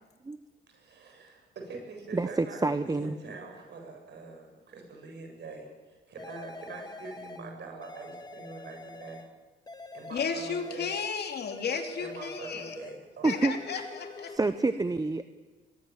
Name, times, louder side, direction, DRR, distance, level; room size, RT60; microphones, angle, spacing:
voice 1, 0.7-5.7 6.1-9.2 9.9-10.9 12.0-13.5, right 3 dB, 60° right, 2 dB, 7.5 m, -44 dB
voice 2, 2.1-3.2 13.2-13.9 14.3-15.3, right 3 dB, 20° right, 11 dB, 0.9 m, -28 dB
sound 1, 6.2-7.5 7.8-9.3 9.7-11.2 11.5-13.0 13.3-14.4, left 3 dB, 20° left, 2.0 m, -45 dB
voice 3, 10.1-12.8 13.2-14.3, left 6 dB, 55° left, 5 dB, 3.0 m, -34 dB
22.5 x 21.5 x 7.4 m, 1.3 s
cardioid pair, 90°, 20 cm